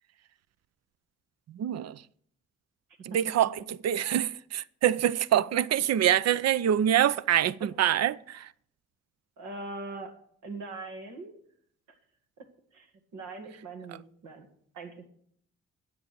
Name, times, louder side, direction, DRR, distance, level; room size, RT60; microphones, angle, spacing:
voice 1, 1.6-2.0 3.1-3.6 3.8-8.5, right 11 dB, 60° right, 0.6 m, -25 dB
voice 2, 9.4-10.1 10.4-11.3 12.7-12.9 13.1-14.5 14.7-15.1, right 3 dB, 80° right, 2.0 m, -41 dB
9.7 x 8.1 x 7.8 m
hypercardioid pair, 45°, 29 cm